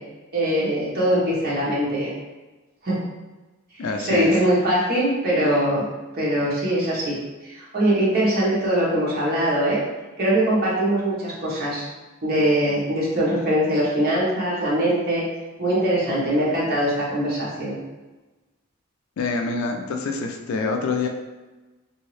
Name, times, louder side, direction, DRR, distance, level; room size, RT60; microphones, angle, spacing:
voice 1, 0.3-2.1 2.8-3.0 4.0-5.9 6.1-7.2 7.4-9.8 10.2-11.8 12.2-15.2 15.6-17.8, right 1 dB, 50° right, -7 dB, 1.1 m, -22 dB
voice 2, 3.8-4.3 19.2-21.1, left 4 dB, 75° left, 4 dB, 0.4 m, -26 dB
2.8 x 2.7 x 3.1 m, 1.2 s
head